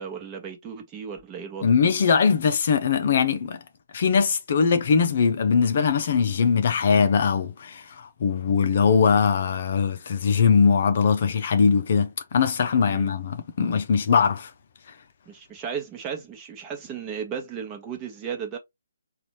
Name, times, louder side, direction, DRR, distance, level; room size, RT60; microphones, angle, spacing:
voice 1, 0.0-1.7 12.9-13.1 15.3-18.6, right 7 dB, 20° right, 1.0 m, -35 dB
voice 2, 1.6-3.6 3.9-14.5, left 6 dB, 50° left, 0.6 m, -21 dB
4.0 x 2.4 x 3.1 m
figure-of-eight pair, 145°, 0 cm